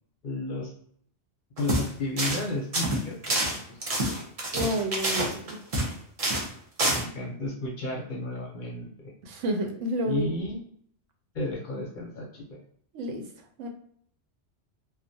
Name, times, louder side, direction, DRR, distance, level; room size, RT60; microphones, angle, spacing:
voice 1, 0.2-0.7 1.6-3.8 4.5-4.7 6.9-9.1 10.0-10.6 11.3-12.6, left 2 dB, 50° left, -1 dB, 0.7 m, -33 dB
sound 1, 1.6-1.9 2.2-2.4 2.7-5.9 6.2-6.5 6.8-7.0, right 1 dB, 40° right, 0.5 m, -27 dB
voice 2, 4.5-5.6 9.2-10.4 12.9-13.2 13.6-13.7, right 1 dB, 90° right, 4 dB, 0.9 m, -30 dB
2.4 x 2.0 x 2.6 m, 0.63 s
omnidirectional pair, 1.2 m